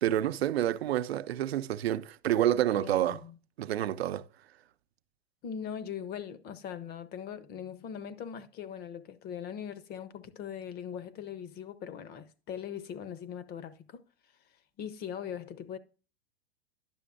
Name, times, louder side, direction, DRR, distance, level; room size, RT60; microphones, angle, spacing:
voice 1, 0.0-3.2 3.6-4.3, right 12 dB, 75° right, 0.6 m, -28 dB
voice 2, 2.8-3.4 5.4-14.0 14.8-15.8, left 8 dB, 30° left, 0.7 m, -40 dB
10.5 x 6.7 x 2.5 m
hypercardioid pair, 105°, 31 cm